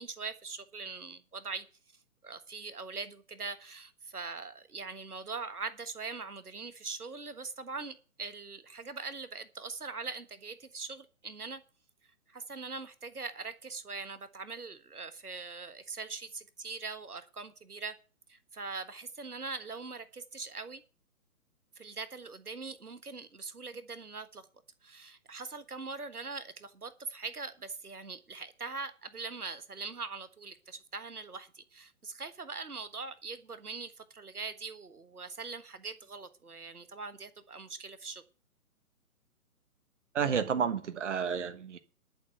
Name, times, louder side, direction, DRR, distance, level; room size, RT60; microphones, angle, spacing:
voice 1, 0.0-1.6 2.2-11.6 12.3-18.0 18.3-20.8 21.8-24.5 24.8-38.2, right 4 dB, 80° right, 1.5 m, -42 dB
voice 2, 40.1-41.8, right 7 dB, 50° right, 1.3 m, -30 dB
11.5 x 6.8 x 7.7 m
figure-of-eight pair, 135°, 45 cm